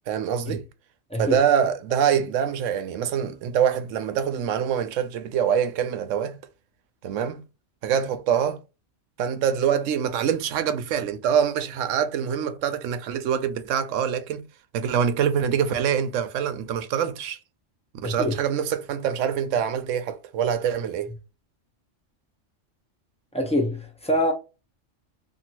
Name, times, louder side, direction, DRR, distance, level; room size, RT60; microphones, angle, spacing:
voice 1, 0.1-0.6 1.2-6.4 7.0-7.4 7.8-8.6 9.2-14.4 14.7-17.4 18.0-21.1, right 8 dB, 80° right, 0.9 m, -25 dB
voice 2, 18.0-18.3 23.3-24.3, equal, 5° left, 0.5 m, -25 dB
2.7 x 2.6 x 2.8 m
omnidirectional pair, 1.3 m